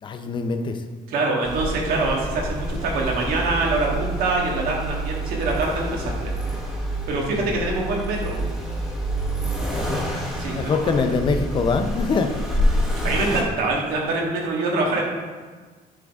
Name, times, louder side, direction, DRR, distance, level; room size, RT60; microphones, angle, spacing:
voice 1, 0.0-0.8 7.3-7.5 9.7-10.1 10.6-12.3, left 4 dB, 35° left, 7 dB, 0.5 m, -24 dB
voice 2, 1.1-6.3 7.1-8.3 10.4-11.0 13.0-15.0, right 3 dB, 75° right, -2 dB, 1.7 m, -24 dB
Accelerating revving vroom, 1.4-13.4, equal, 5° right, 1.0 m, -27 dB
9.7 x 3.8 x 3.5 m, 1.4 s
cardioid pair, 150°, 15 cm